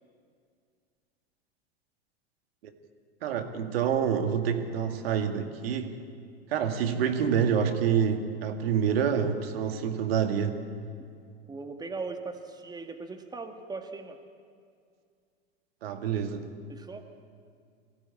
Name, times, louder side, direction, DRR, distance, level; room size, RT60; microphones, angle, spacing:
voice 1, 3.2-5.9 6.5-10.6 15.8-16.4, right 7 dB, 70° right, 6 dB, 2.0 m, -27 dB
voice 2, 11.5-14.2 16.7-17.1, right 4 dB, 15° right, 5 dB, 1.8 m, -39 dB
23.0 x 16.5 x 8.7 m, 2.2 s
hypercardioid pair, 90°, 31 cm